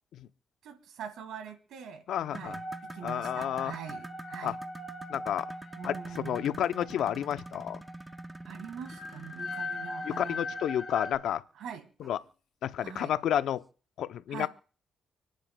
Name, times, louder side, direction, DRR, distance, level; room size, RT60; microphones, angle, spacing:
voice 1, 0.6-2.0 2.3-4.6 5.8-6.5 8.4-10.4 11.5-11.9 12.8-13.1 14.3-14.5, right 8 dB, 80° right, 1.9 m, -43 dB
voice 2, 2.1-2.6 3.0-3.7 4.4-4.5 5.1-5.5 5.8-7.8 10.0-11.4 12.0-12.2 12.6-13.6 14.0-14.5, left 10 dB, 75° left, 0.6 m, -31 dB
sound 1, 2.2-10.6 12.0-12.2 12.6-12.7 13.4-13.5, right 1 dB, 15° right, 0.5 m, -46 dB
sound 2, 2.4-11.2, left 2 dB, 30° left, 2.8 m, -41 dB
30.0 x 10.0 x 2.2 m
cardioid pair, 90°, 0 cm